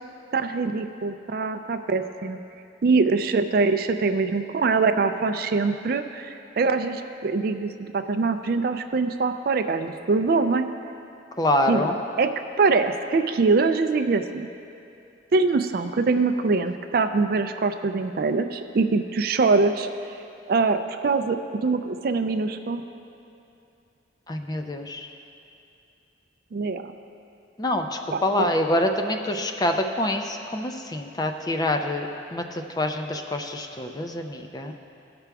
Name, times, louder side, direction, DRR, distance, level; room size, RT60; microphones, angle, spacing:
voice 1, 0.3-2.4 2.8-10.7 11.7-11.9 12.2-12.3 12.6-14.5 15.3-19.9 20.5-22.8 26.5-26.8 28.1-28.5, right 4 dB, 50° right, 8 dB, 0.4 m, -23 dB
voice 2, 11.4-12.0 24.3-25.1 27.6-34.7, left 1 dB, 20° left, 5 dB, 0.4 m, -26 dB
16.0 x 5.9 x 3.4 m, 2.7 s
head